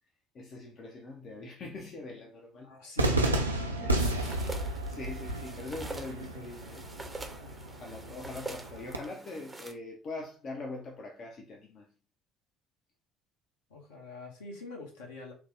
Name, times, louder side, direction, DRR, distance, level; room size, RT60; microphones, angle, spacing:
voice 1, 0.3-2.7 3.7-4.0 4.4-6.9 7.2-7.4 7.7-11.9, left 2 dB, 40° left, 0.5 m, -43 dB
voice 2, 2.5-4.4 13.7-15.3, left 3 dB, 70° left, 0.9 m, -46 dB
Cheering / Fireworks, 3.0-9.0, right 1 dB, 85° right, 0.3 m, -32 dB
sound 1, 3.9-9.7, right 2 dB, 15° right, 0.6 m, -44 dB
3.1 x 2.1 x 3.2 m
figure-of-eight pair, 55°, 0 cm